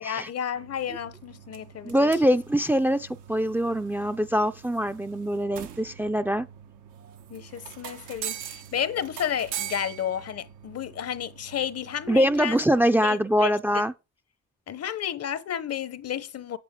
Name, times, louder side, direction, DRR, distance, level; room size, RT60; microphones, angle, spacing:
voice 1, 0.0-2.1 7.3-12.6 13.0-13.8 14.7-16.6, left 9 dB, 55° left, 0.9 m, -32 dB
sound 1, 0.5-12.5, right 10 dB, 90° right, 1.3 m, -42 dB
voice 2, 1.8-6.5 12.1-13.9, equal, 5° right, 0.5 m, -23 dB
8.6 x 8.4 x 3.7 m
cardioid pair, 90°, 30 cm